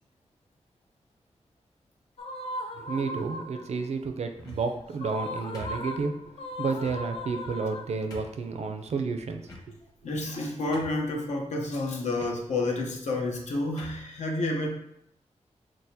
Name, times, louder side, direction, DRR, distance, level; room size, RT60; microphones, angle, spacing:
sound 1, 2.2-3.8 4.9-8.3, left 1 dB, 55° left, 0.3 m, -38 dB
voice 1, 2.8-6.1 6.6-9.4 9.7-9.8, right 4 dB, 65° right, 6 dB, 0.4 m, -31 dB
sound 2, 4.3-4.8 5.5-6.2 6.8-7.0 7.6-7.7 8.1-8.4 9.4-10.0 10.3-10.4 10.7-11.2 12.1-12.4 13.2-13.4 13.8-14.1, left 1 dB, 30° left, 1.0 m, -45 dB
voice 2, 10.0-14.8, left 2 dB, 80° left, 0 dB, 0.8 m, -30 dB
6.1 x 2.1 x 2.7 m, 0.76 s
wide cardioid pair, 170°, 12 cm